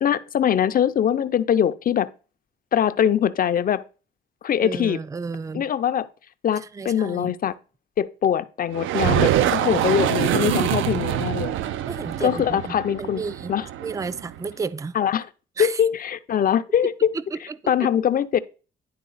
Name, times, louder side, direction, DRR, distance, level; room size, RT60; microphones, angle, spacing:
voice 1, 0.0-2.1 2.7-3.8 4.4-5.0 5.5-6.1 6.4-7.5 8.0-11.5 12.2-13.2 13.5-13.7 14.9-15.3 15.6-17.1 17.7-18.4, left 9 dB, 45° left, 0.5 m, -22 dB
voice 2, 4.6-5.7 6.6-7.3 11.9-13.5 13.8-14.9 15.6-15.8 17.1-17.7, right 4 dB, 15° right, 0.4 m, -32 dB
sound 1, 8.7-14.4, right 12 dB, 80° right, 0.5 m, -24 dB
10.5 x 3.6 x 4.0 m
cardioid pair, 90°, 20 cm